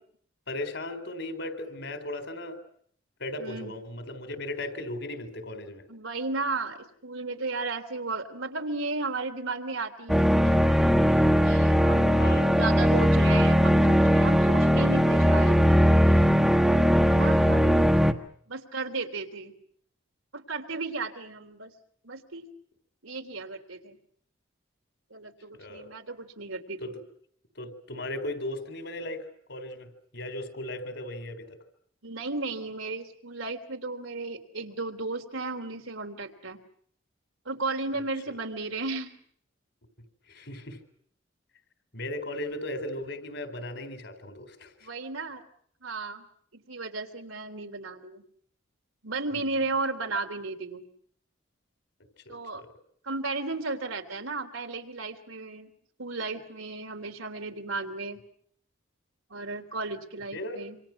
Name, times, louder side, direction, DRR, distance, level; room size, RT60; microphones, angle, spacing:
voice 1, 0.5-2.6 3.2-5.8 12.1-12.5 25.6-25.9 26.8-27.0 27.6-31.6 38.3-38.4 40.3-40.8 41.9-44.9 49.3-49.5 52.3-52.7 60.3-60.6, left 1 dB, 60° left, 8 dB, 4.3 m, -37 dB
voice 2, 3.4-3.7 5.9-10.8 11.4-15.6 17.1-18.0 18.5-19.5 20.3-21.7 22.0-22.5 23.0-24.0 25.1-26.9 32.0-36.6 37.4-39.2 44.8-45.4 45.8-46.2 46.5-48.2 49.0-50.8 52.3-52.6 53.0-55.7 56.0-58.2 59.3-60.8, right 3 dB, 85° right, 4 dB, 3.4 m, -34 dB
sound 1, 10.1-18.1, equal, ahead, 1.4 m, -20 dB
27.0 x 26.5 x 6.1 m, 0.63 s
head